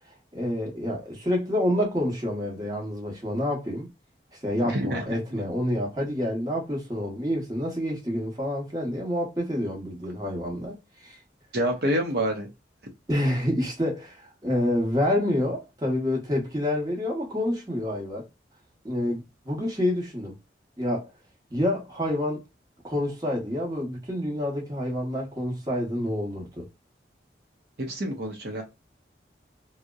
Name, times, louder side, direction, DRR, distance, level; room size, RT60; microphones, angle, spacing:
voice 1, 0.3-3.9 4.4-11.2 13.1-18.3 18.8-20.4 20.8-21.1 21.5-22.4 22.8-26.7, left 1 dB, 20° right, 0.8 m, -28 dB
voice 2, 4.6-5.2 11.5-12.5 27.8-28.6, equal, 60° right, 0.6 m, -27 dB
2.7 x 2.0 x 2.2 m
head